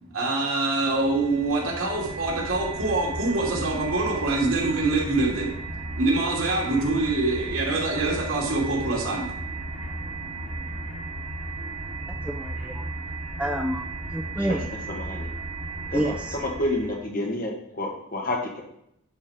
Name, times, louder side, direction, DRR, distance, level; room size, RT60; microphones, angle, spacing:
voice 1, 0.0-5.6 5.9-9.3, right 2 dB, 80° right, -3 dB, 2.7 m, -25 dB
sound 1, 0.8-17.0, right 2 dB, 55° right, 2.9 m, -35 dB
voice 2, 12.2-12.8 13.4-13.9 14.1-14.6 15.9-16.4, right 1 dB, 5° right, 3 dB, 0.4 m, -28 dB
voice 3, 14.9-15.3 15.9-18.6, left 1 dB, 45° left, 0 dB, 1.6 m, -29 dB
11.0 x 4.8 x 4.4 m, 0.76 s
head